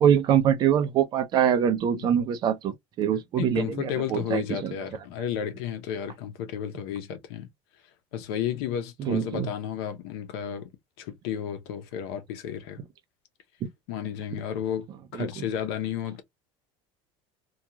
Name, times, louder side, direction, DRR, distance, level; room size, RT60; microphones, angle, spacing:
voice 1, 0.0-4.7 9.0-9.5 13.6-13.7 14.3-14.4 15.2-15.5, right 9 dB, 35° right, 0.5 m, -24 dB
voice 2, 1.9-2.2 3.4-7.5 8.1-10.7 11.0-12.8 13.9-14.9 15.1-16.2, left 9 dB, 90° left, 0.7 m, -32 dB
2.8 x 2.4 x 2.2 m
cardioid pair, 160°, 13 cm